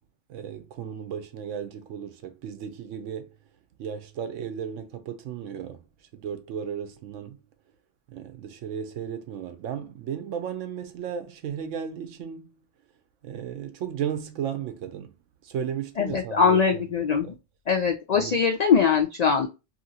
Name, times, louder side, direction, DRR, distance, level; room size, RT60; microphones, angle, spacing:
voice 1, 0.3-3.3 3.8-5.8 6.1-7.4 8.1-12.5 13.2-15.1 15.4-16.8 17.2-17.3 18.1-18.4, right 8 dB, 85° right, 1.0 m, -34 dB
voice 2, 16.0-17.3 17.7-19.5, left 6 dB, 75° left, 0.3 m, -22 dB
2.8 x 2.8 x 2.7 m
omnidirectional pair, 1.2 m